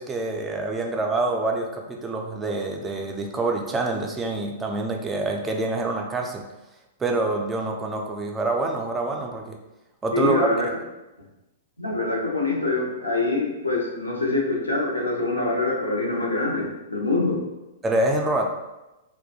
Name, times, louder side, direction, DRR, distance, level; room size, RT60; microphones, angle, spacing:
voice 1, 0.0-6.4 7.0-9.6 10.0-10.8 17.8-18.5, right 2 dB, 15° right, 1 dB, 0.3 m, -26 dB
voice 2, 10.1-10.7 11.8-17.4, left 3 dB, 90° left, -2 dB, 0.5 m, -25 dB
2.2 x 2.1 x 2.7 m, 1.0 s
figure-of-eight pair, 110°, 0 cm